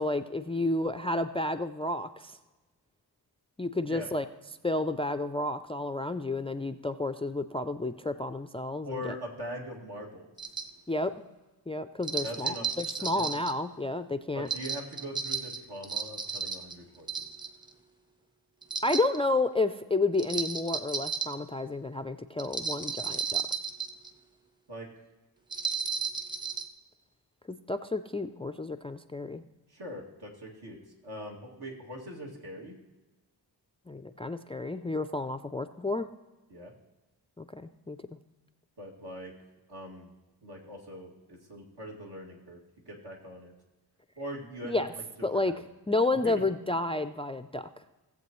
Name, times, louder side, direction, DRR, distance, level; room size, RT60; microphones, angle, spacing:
voice 1, 0.0-2.3 3.6-4.2 4.6-9.1 10.9-11.1 11.7-14.5 18.8-23.4 27.5-29.4 33.9-36.1 37.4-38.0 44.6-44.9 45.2-45.5 45.9-47.7, left 2 dB, 15° left, 10 dB, 0.3 m, -31 dB
voice 2, 8.8-10.3 12.2-12.7 13.0-13.3 14.3-17.1 24.7-24.9 29.7-30.8 31.0-32.8 36.5-36.7 38.8-39.3 39.7-40.1 40.4-42.6 42.9-43.5 44.2-44.9 45.2-45.6 46.2-46.4, equal, 65° right, -2 dB, 2.3 m, -41 dB
sound 1, 10.4-10.7 12.0-13.5 14.5-16.7 17.1-17.7 18.6-19.2 20.2-21.3 22.4-24.1 25.5-26.7, right 5 dB, 10° right, 0.7 m, -33 dB
17.5 x 7.7 x 3.1 m, 1.1 s
wide cardioid pair, 85°, 41 cm